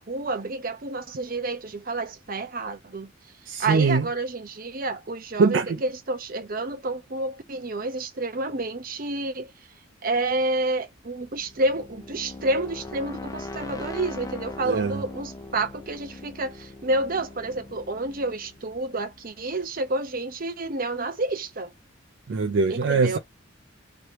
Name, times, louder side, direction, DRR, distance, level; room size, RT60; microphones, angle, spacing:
voice 1, 0.0-3.1 3.6-9.5 10.0-21.7 22.7-23.2, right 2 dB, 45° right, 0.8 m, -29 dB
voice 2, 3.5-4.0 5.4-5.8 14.6-14.9 22.3-23.2, right 4 dB, 65° right, 0.4 m, -22 dB
sound 1, 11.1-19.9, left 2 dB, 15° left, 0.4 m, -41 dB
3.2 x 2.9 x 3.0 m
head